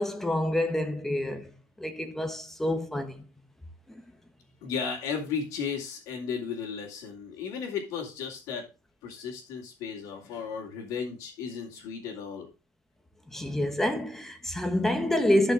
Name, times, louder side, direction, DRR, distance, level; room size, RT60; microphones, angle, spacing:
voice 1, 0.0-1.5 1.8-3.2 3.9-4.0 13.3-15.5, left 1 dB, 5° left, 1.2 m, -27 dB
voice 2, 4.6-8.7 9.0-12.5, left 6 dB, 65° left, 2.8 m, -35 dB
13.0 x 6.0 x 3.8 m
cardioid pair, 165°, 7 cm